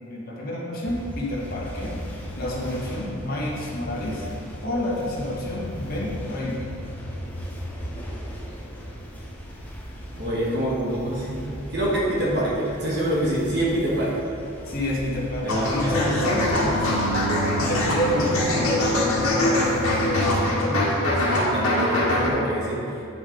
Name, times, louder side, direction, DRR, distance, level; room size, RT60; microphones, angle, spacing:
voice 1, 0.1-2.0 2.4-4.3 4.6-6.6 14.6-16.8 17.7-21.0, left 1 dB, 45° left, -5 dB, 1.5 m, -28 dB
sound 1, 0.8-20.5, equal, 10° left, 0.8 m, -38 dB
voice 2, 10.1-14.1 15.4-16.4 20.3-20.6 21.2-22.8, right 1 dB, 50° right, -5 dB, 1.3 m, -26 dB
sound 2, 15.5-22.3, left 1 dB, 80° left, 1.6 m, -23 dB
8.5 x 5.8 x 3.8 m, 2.7 s
head